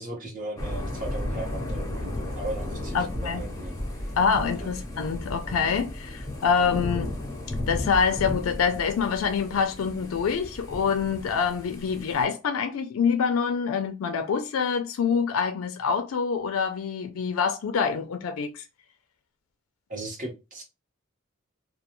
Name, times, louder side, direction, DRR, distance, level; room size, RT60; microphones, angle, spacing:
voice 1, 0.0-4.1 4.5-4.7 19.9-20.6, right 1 dB, 40° right, 0.9 m, -37 dB
Thunder / Rain, 0.6-12.3, left 1 dB, 15° left, 0.7 m, -34 dB
voice 2, 2.9-3.4 4.2-7.1 7.7-18.6, left 6 dB, 85° left, 0.4 m, -26 dB
2.3 x 2.2 x 2.9 m
head